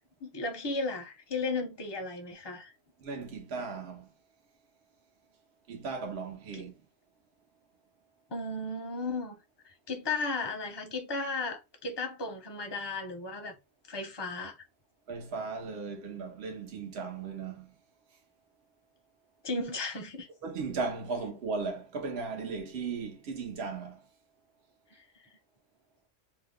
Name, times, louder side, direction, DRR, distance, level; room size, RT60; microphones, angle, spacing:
voice 1, 0.2-2.7 6.5-6.6 8.3-9.3 9.6-13.5 13.9-14.5 19.4-20.3 24.9-25.0, left 3 dB, 30° left, 0.6 m, -35 dB
voice 2, 3.0-4.1 5.7-6.8 15.1-17.7 20.4-24.0, right 4 dB, 65° right, 1.1 m, -36 dB
2.7 x 2.2 x 3.5 m
omnidirectional pair, 1.2 m